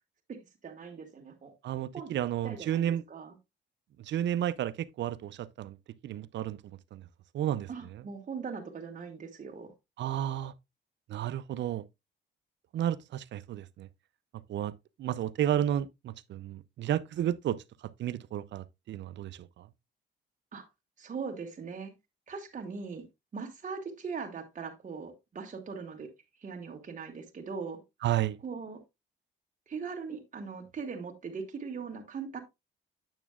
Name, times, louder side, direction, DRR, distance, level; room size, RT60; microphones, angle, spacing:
voice 1, 0.6-1.5 1.9-2.1 2.4-3.3 7.7-9.7 20.5-20.7 21.0-21.9 22.3-23.1 23.3-26.1 26.4-27.8 28.4-28.8 29.7-32.4, right 5 dB, 40° right, 1.9 m, -40 dB
voice 2, 1.6-3.0 4.0-5.8 6.0-6.6 6.9-7.0 7.3-8.0 10.0-10.5 11.1-11.8 12.7-13.9 14.5-14.7 15.0-19.7 28.0-28.4, right 11 dB, 65° right, 0.6 m, -32 dB
9.0 x 7.2 x 2.4 m
cardioid pair, 90°, 20 cm